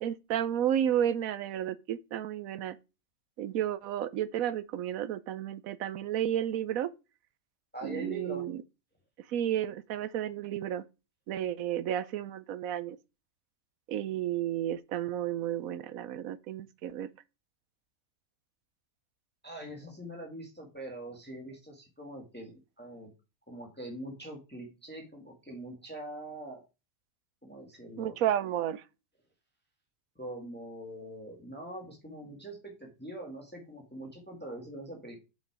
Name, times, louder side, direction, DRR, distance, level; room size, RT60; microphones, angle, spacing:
voice 1, 0.0-2.8 3.4-6.9 7.8-8.6 9.3-10.9 11.3-13.0 13.9-17.1 28.0-28.8, right 10 dB, 75° right, 1.1 m, -32 dB
voice 2, 7.7-8.5 19.4-23.1 23.5-26.6 27.4-28.2 30.2-35.2, right 1 dB, 5° left, 2.1 m, -43 dB
7.7 x 5.9 x 4.8 m
omnidirectional pair, 1.5 m